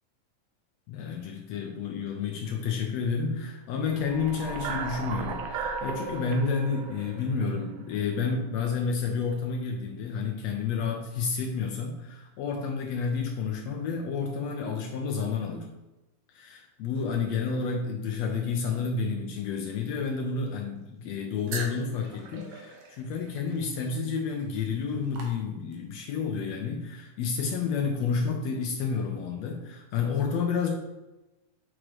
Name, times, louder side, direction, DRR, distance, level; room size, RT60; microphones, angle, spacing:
voice 1, 0.9-15.7 16.3-30.7, left 5 dB, 75° left, 3 dB, 1.6 m, -30 dB
sound 1, 3.9-8.2, right 4 dB, 80° right, 1.6 m, -36 dB
sound 2, 21.5-26.0, right 3 dB, 60° right, 1.7 m, -42 dB
6.2 x 6.1 x 3.1 m, 1.0 s
omnidirectional pair, 3.6 m